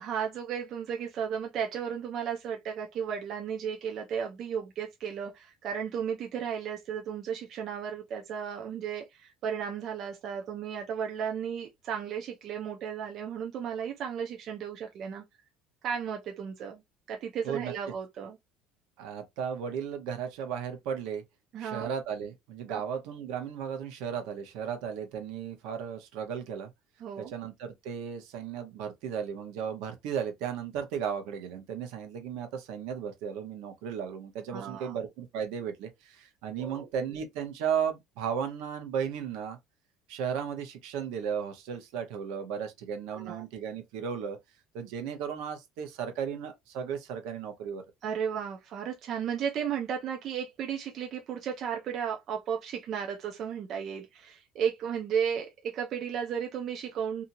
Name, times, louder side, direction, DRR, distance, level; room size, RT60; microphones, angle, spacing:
voice 1, 0.0-15.2 15.8-16.8 17.1-18.4 21.5-21.9 22.7-22.8 27.0-27.3 34.5-35.0 36.6-36.9 43.1-43.5 48.0-57.2, right 7 dB, 40° right, 0.5 m, -34 dB
voice 2, 19.0-21.2 21.6-26.7 27.2-39.6 40.1-44.4 44.7-47.8, right 7 dB, 70° right, 0.9 m, -35 dB
2.8 x 2.6 x 2.6 m
cardioid pair, 170°, 0 cm